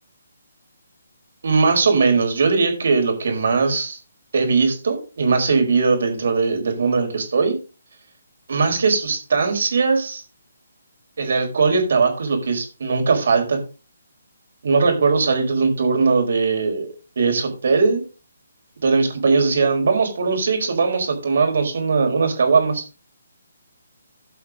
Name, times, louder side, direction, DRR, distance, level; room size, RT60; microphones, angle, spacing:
voice 1, 1.4-4.0 4.3-7.6 8.5-10.2 11.2-13.6 14.6-18.0 18.8-22.8, right 4 dB, 65° right, 3 dB, 4.8 m, -19 dB
16.5 x 5.9 x 3.7 m, 0.33 s
hypercardioid pair, 150°, 0 cm